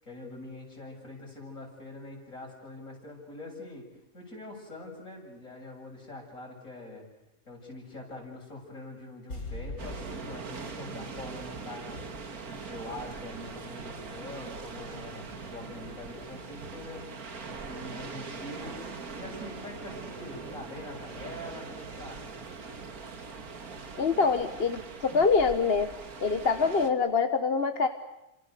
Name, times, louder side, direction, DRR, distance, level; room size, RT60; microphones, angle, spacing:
voice 1, 0.0-3.9 4.1-7.0 7.5-12.0 12.5-18.8 19.2-22.2, left 2 dB, 65° left, -1 dB, 8.0 m, -44 dB
sound 1, 9.3-12.5 12.8-12.9, left 2 dB, 85° left, 5.8 m, -43 dB
sound 2, 9.8-26.9, right 4 dB, 85° right, 2.3 m, -41 dB
voice 2, 24.0-25.9 26.2-27.9, left 5 dB, 45° left, 8 dB, 1.3 m, -25 dB
29.5 x 26.5 x 6.7 m, 0.91 s
omnidirectional pair, 1.5 m